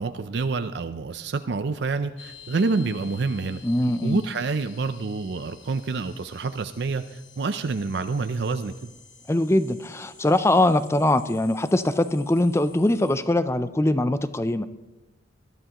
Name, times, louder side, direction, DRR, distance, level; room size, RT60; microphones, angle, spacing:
voice 1, 0.0-3.6 4.0-8.9, right 4 dB, 60° right, 9 dB, 0.5 m, -27 dB
sound 1, 2.2-13.1, left 7 dB, 65° left, 2.1 m, -50 dB
voice 2, 3.6-4.2 9.3-14.7, left 1 dB, 15° left, 12 dB, 0.4 m, -22 dB
21.5 x 12.5 x 3.0 m, 1.1 s
head